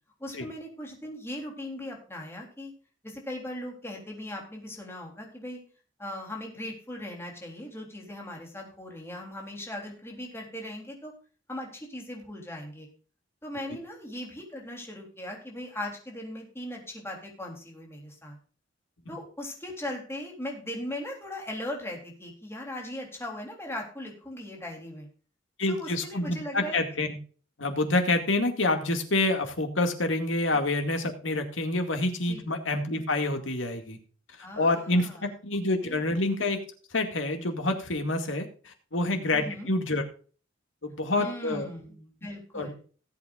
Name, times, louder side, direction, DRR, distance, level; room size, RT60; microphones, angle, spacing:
voice 1, 0.2-2.7 3.0-5.6 6.0-11.1 11.5-12.9 13.4-18.4 19.1-25.1 25.7-26.8 30.5-30.6 32.2-32.4 34.4-35.3 35.8-36.1 39.3-39.7 41.2-42.7, left 1 dB, 15° left, 0 dB, 3.5 m, -39 dB
voice 2, 25.6-27.1 27.6-34.0 34.6-36.6 36.9-40.0 40.8-41.7 42.5-42.7, left 2 dB, 80° left, 5 dB, 2.2 m, -27 dB
18.5 x 8.3 x 2.5 m, 0.40 s
head